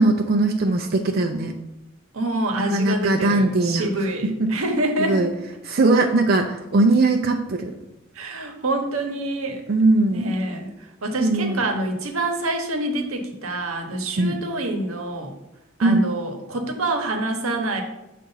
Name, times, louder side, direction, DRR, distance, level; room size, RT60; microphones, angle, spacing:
voice 1, 0.0-1.6 2.7-3.9 4.4-4.5 5.1-5.3 5.7-7.7 9.7-10.3 11.2-11.6 14.2-14.4 15.8-16.1, right 2 dB, 45° right, 3 dB, 0.4 m, -20 dB
voice 2, 2.1-5.3 8.1-9.6 10.1-15.3 15.8-17.8, right 2 dB, 90° right, 4 dB, 0.9 m, -26 dB
6.8 x 2.5 x 5.5 m, 0.95 s
head